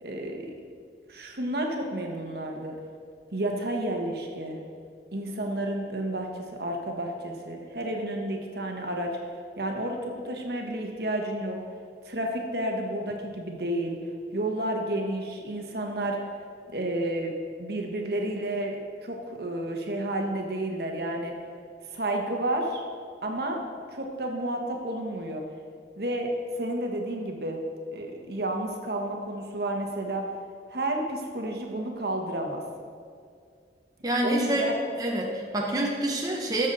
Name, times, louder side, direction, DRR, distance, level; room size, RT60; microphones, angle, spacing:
voice 1, 0.0-0.5 1.1-2.8 3.3-4.6 5.1-9.2 9.6-11.6 12.0-14.0 14.3-16.2 16.7-17.3 17.6-21.4 21.9-22.8 23.2-23.6 23.9-25.4 26.0-27.6 27.9-30.3 30.7-32.6 34.2-34.7, right 1 dB, 65° right, 2 dB, 1.2 m, -31 dB
voice 2, 34.0-34.7 35.0-36.7, right 1 dB, 20° right, -1 dB, 0.9 m, -27 dB
13.0 x 6.7 x 4.0 m, 2.2 s
head